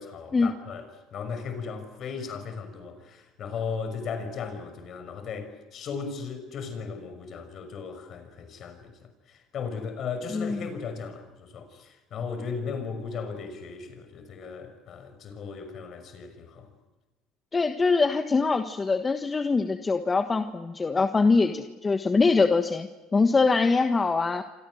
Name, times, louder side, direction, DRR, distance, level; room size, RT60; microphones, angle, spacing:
voice 1, 0.0-16.7, left 5 dB, 50° left, 6.0 m, -36 dB
voice 2, 10.3-10.7 17.5-24.4, left 4 dB, 25° left, 1.4 m, -23 dB
29.0 x 26.0 x 6.5 m
hypercardioid pair, 75°, 0 cm